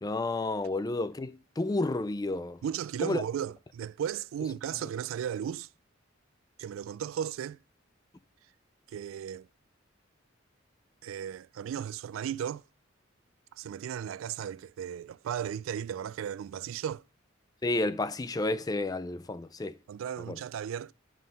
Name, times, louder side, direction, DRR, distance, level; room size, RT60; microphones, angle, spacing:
voice 1, 0.0-2.6 3.0-3.2 17.6-19.8 20.3-20.4, left 2 dB, 20° left, 0.4 m, -31 dB
voice 2, 2.6-5.7 6.6-7.6 8.9-9.5 11.0-12.6 13.5-17.0 19.9-20.9, right 9 dB, 85° right, 0.3 m, -35 dB
11.0 x 3.8 x 5.3 m
head